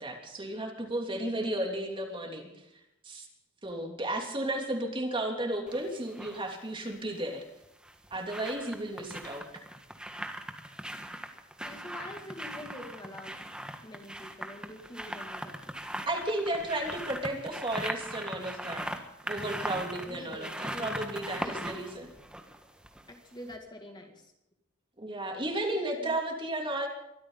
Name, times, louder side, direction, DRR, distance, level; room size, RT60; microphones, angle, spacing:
voice 1, 0.0-2.6 3.0-3.3 3.6-7.4 8.1-9.6 16.1-18.9 19.2-22.1 25.0-26.9, right 1 dB, 25° right, 2 dB, 3.0 m, -34 dB
sound 1, 5.7-6.4 7.6-23.2 23.5-23.6, right 1 dB, 5° right, 1.6 m, -40 dB
voice 2, 11.6-13.4 13.8-16.0 19.4-19.6 20.0-21.0 21.4-21.6 23.1-24.3 25.9-26.1, left 1 dB, 20° left, 3 dB, 2.4 m, -46 dB
24.0 x 13.5 x 4.0 m, 0.86 s
head